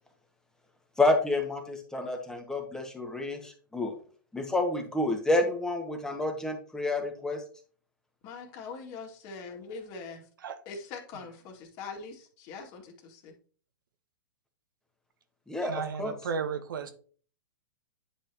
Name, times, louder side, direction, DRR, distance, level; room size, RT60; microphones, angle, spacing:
voice 1, 1.0-3.9 4.3-7.4 15.5-15.7 16.0-16.1, left 2 dB, 5° left, 3 dB, 1.6 m, -29 dB
voice 2, 8.2-10.3 10.7-13.3, left 4 dB, 40° left, 2 dB, 2.3 m, -42 dB
voice 3, 15.6-16.9, right 6 dB, 70° right, 10 dB, 1.3 m, -34 dB
10.0 x 4.9 x 3.0 m, 0.42 s
hypercardioid pair, 120°, 11 cm